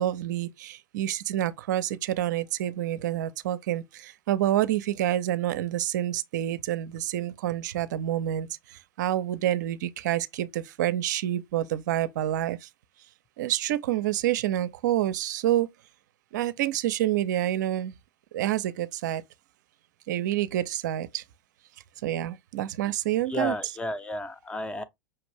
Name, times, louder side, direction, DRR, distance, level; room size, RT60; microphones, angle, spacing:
voice 1, 0.0-12.7 13.4-15.7 16.3-18.0 18.3-19.2 20.1-21.2 22.0-23.5, right 12 dB, 60° right, 0.5 m, -28 dB
voice 2, 23.3-24.8, left 1 dB, 10° left, 0.6 m, -32 dB
5.7 x 2.5 x 3.2 m
hypercardioid pair, 95°, 11 cm